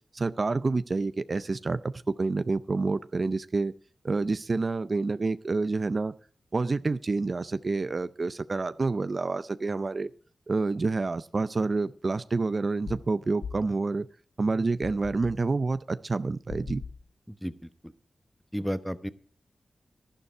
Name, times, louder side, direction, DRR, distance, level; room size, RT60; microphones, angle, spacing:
voice 1, 0.1-1.9 2.2-3.7 4.0-6.1 6.5-10.1 10.5-14.1 14.4-16.8, right 3 dB, 50° right, 14 dB, 0.4 m, -28 dB
sound 1, 12.9-13.1 13.4-13.7 14.8-15.4 16.5-17.1, left 5 dB, 85° left, 0.7 m, -40 dB
voice 2, 17.3-17.9 18.5-19.1, equal, ahead, 12 dB, 1.0 m, -33 dB
11.5 x 11.5 x 4.5 m, 0.41 s
cardioid pair, 55°, 0 cm